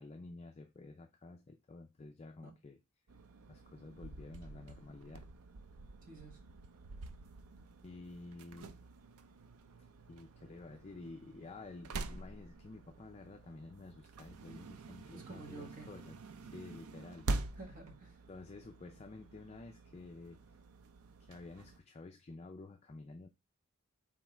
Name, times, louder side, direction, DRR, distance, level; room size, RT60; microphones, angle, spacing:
voice 1, 0.0-2.8 3.5-5.3 7.8-8.8 10.1-17.3 18.3-20.4 21.2-23.3, left 3 dB, 30° left, 0.4 m, -51 dB
sound 1, 3.1-21.8, right 3 dB, 80° right, 0.5 m, -47 dB
voice 2, 6.0-6.4 15.1-15.9 17.6-18.2, right 3 dB, 40° right, 1.5 m, -51 dB
4.4 x 3.6 x 3.1 m
head